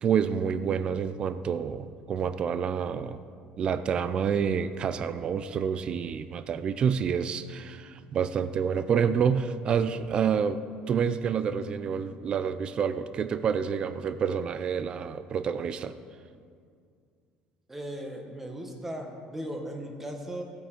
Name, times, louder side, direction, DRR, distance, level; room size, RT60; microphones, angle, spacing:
voice 1, 0.0-3.2 3.6-10.6 10.9-15.9, right 7 dB, 35° right, 13 dB, 0.4 m, -28 dB
voice 2, 17.7-20.4, right 1 dB, 10° right, 3 dB, 1.3 m, -37 dB
14.5 x 8.4 x 4.5 m, 2.2 s
cardioid pair, 155°, 3 cm